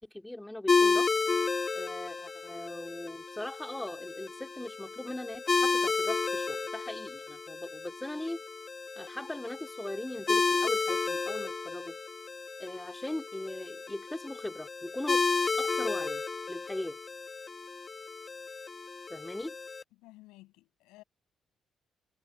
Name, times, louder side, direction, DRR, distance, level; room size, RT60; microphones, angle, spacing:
voice 1, 0.0-1.1 1.8-8.4 9.0-12.0 12.6-15.2 15.6-16.2 16.5-17.0 19.1-19.6, left 1 dB, 10° left, 3.6 m, -39 dB
sound 1, 0.7-19.8, left 4 dB, 35° left, 0.5 m, -32 dB
voice 2, 20.0-21.0, left 20 dB, 70° left, 7.7 m, -54 dB
figure-of-eight pair, 40°, 0 cm